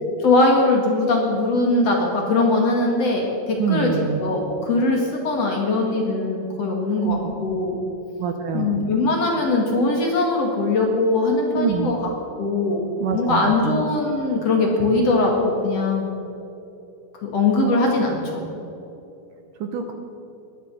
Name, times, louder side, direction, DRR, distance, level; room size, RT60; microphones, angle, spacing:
voice 1, 0.2-3.9 4.2-7.8 8.5-12.1 12.4-12.8 13.1-16.1 17.2-18.5, left 2 dB, 50° left, 0 dB, 2.5 m, -21 dB
voice 2, 3.6-4.2 7.0-7.3 8.2-8.9 11.5-11.9 13.0-13.8 19.6-19.9, right 7 dB, 70° right, 5 dB, 2.3 m, -25 dB
18.0 x 11.5 x 6.2 m, 2.9 s
omnidirectional pair, 4.4 m